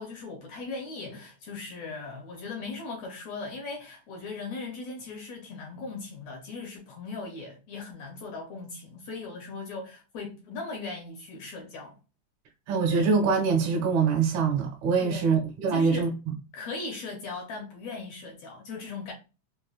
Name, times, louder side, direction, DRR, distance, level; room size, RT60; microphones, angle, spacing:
voice 1, 0.0-12.0 15.0-15.3 15.7-16.1 16.5-19.1, left 3 dB, 75° left, 1.7 m, -38 dB
voice 2, 12.7-16.3, right 5 dB, 70° right, 1.9 m, -24 dB
5.3 x 2.1 x 2.3 m
omnidirectional pair, 3.6 m